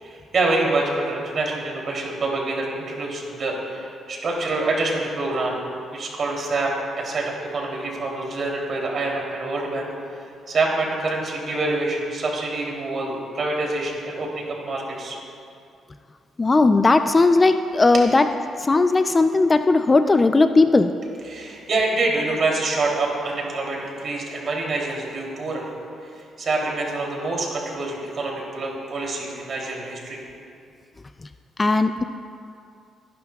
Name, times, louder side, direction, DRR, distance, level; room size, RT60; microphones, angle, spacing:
voice 1, 0.0-5.6 5.9-9.9 10.5-15.2 17.9-18.0 21.0-25.7 26.1-30.2, right 2 dB, 50° right, -2 dB, 3.1 m, -26 dB
voice 2, 16.4-18.2 18.6-20.9 31.6-32.0, left 3 dB, 25° left, 9 dB, 0.4 m, -17 dB
21.5 x 11.0 x 2.4 m, 2.4 s
cardioid pair, 90°, 0 cm